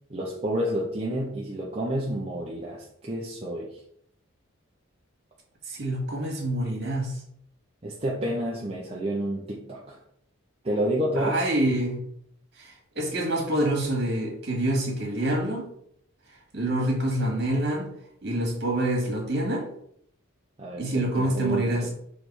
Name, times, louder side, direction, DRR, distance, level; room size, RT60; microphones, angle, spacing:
voice 1, 0.1-3.7 7.8-10.0 10.6-11.4 20.6-21.9, right 1 dB, 30° right, -4 dB, 0.8 m, -29 dB
voice 2, 5.7-7.2 11.2-12.0 12.6-15.7 16.5-17.9 18.2-19.6 20.8-21.9, right 1 dB, 50° right, 0 dB, 2.1 m, -26 dB
6.5 x 3.4 x 4.7 m, 0.69 s
head